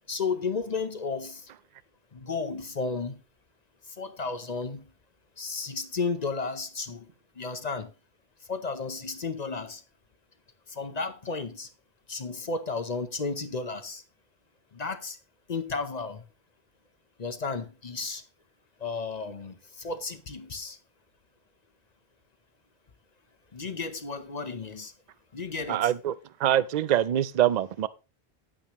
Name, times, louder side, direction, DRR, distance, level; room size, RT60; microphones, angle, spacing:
voice 1, 0.1-1.4 2.1-3.2 4.0-4.8 5.4-7.0 7.4-7.9 8.5-9.8 10.8-11.7 12.1-14.0 14.7-15.2 15.5-16.2 17.2-18.2 18.8-20.8 23.5-24.9 25.3-25.9, left 4 dB, 40° left, 0.9 m, -33 dB
voice 2, 25.7-26.1 26.4-27.9, right 11 dB, 55° right, 0.5 m, -24 dB
10.0 x 8.9 x 3.0 m
omnidirectional pair, 1.1 m